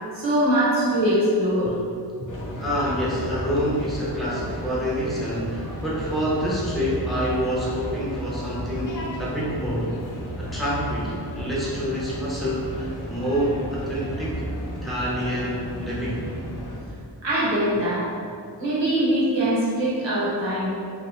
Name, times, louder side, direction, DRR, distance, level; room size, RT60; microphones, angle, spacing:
voice 1, 0.1-1.7 17.2-18.1 18.6-20.8, right 1 dB, 85° right, -8 dB, 1.0 m, -22 dB
sound 1, 2.3-16.8, equal, 45° left, 0.6 m, -33 dB
voice 2, 2.5-9.9 10.4-14.4 14.6-16.2, equal, ahead, -8 dB, 0.8 m, -27 dB
2.7 x 2.2 x 3.0 m, 2.4 s
wide cardioid pair, 45°, 43 cm